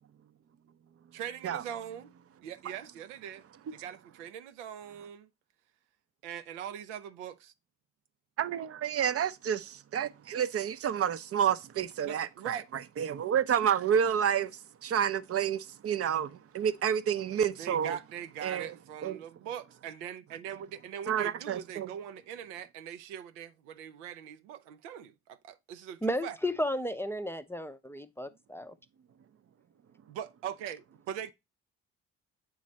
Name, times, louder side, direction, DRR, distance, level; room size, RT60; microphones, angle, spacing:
voice 1, 1.1-2.1 2.4-3.4 3.7-5.3 6.2-7.5 12.0-12.7 17.6-26.4 30.1-31.3, right 9 dB, 85° right, 0.5 m, -41 dB
voice 2, 8.4-12.6 13.0-18.0 18.4-18.7 19.0-19.2 21.1-21.9, right 8 dB, 40° right, 0.6 m, -29 dB
voice 3, 26.0-28.7, equal, 5° left, 0.5 m, -33 dB
7.5 x 3.2 x 4.0 m
hypercardioid pair, 50°, 35 cm